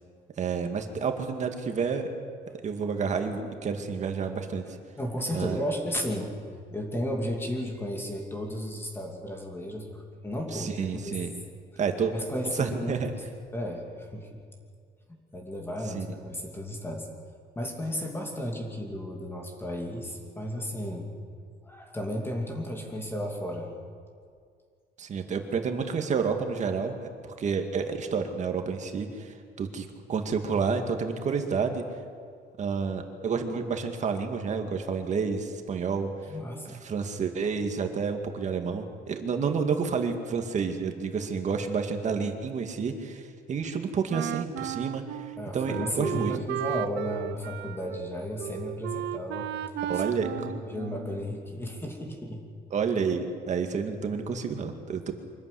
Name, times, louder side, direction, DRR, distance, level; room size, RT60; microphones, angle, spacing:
voice 1, 0.4-2.1 2.6-4.7 5.3-5.6 10.5-11.3 11.8-12.1 12.5-13.1 15.9-16.1 25.0-31.9 32.6-36.1 36.7-46.3 49.8-50.6 52.7-55.1, right 5 dB, 45° right, 5 dB, 2.2 m, -30 dB
voice 2, 5.0-6.4 6.7-11.2 12.1-13.2 13.5-14.4 15.1-17.1 17.6-21.1 21.6-23.7 36.3-36.8 39.4-39.6 45.4-49.5 49.9-52.4, equal, 15° left, 1 dB, 2.7 m, -34 dB
Wind instrument woodwind instrument, 44.1-51.3, right 12 dB, 85° right, 0.7 m, -35 dB
24.5 x 14.0 x 10.0 m, 2.2 s
cardioid pair, 145°, 17 cm